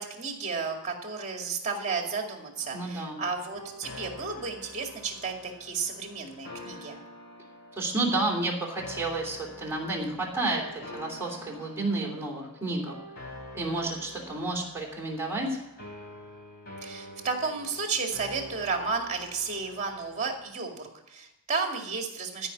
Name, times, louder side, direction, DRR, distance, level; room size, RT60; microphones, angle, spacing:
voice 1, 0.0-7.0 16.8-22.5, right 4 dB, 35° right, 3 dB, 2.1 m, -33 dB
sound 1, 2.5-20.5, left 1 dB, 50° left, 2.9 m, -47 dB
voice 2, 2.7-3.2 7.8-10.6 10.9-12.9 13.5-15.6, right 2 dB, 10° right, -2 dB, 3.1 m, -30 dB
14.0 x 5.6 x 8.4 m, 0.85 s
head